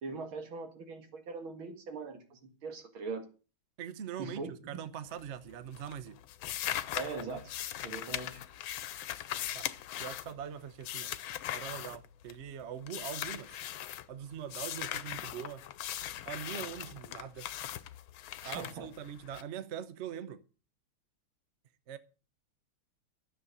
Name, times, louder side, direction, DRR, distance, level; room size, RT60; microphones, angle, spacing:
voice 1, 0.0-3.3 4.2-4.8 6.9-7.5 7.8-8.4 18.4-18.9, right 4 dB, 85° right, 2.7 m, -41 dB
voice 2, 3.8-4.4 4.7-6.2 9.5-9.7 10.0-11.1 11.5-13.5 14.1-15.6 16.2-17.5 18.4-20.4 21.9-22.0, right 9 dB, 50° right, 0.9 m, -42 dB
sound 1, 5.1-5.5 5.7-12.5 12.9-14.1 14.5-19.4, left 12 dB, 85° left, 1.6 m, -39 dB
12.5 x 7.5 x 6.6 m
omnidirectional pair, 2.2 m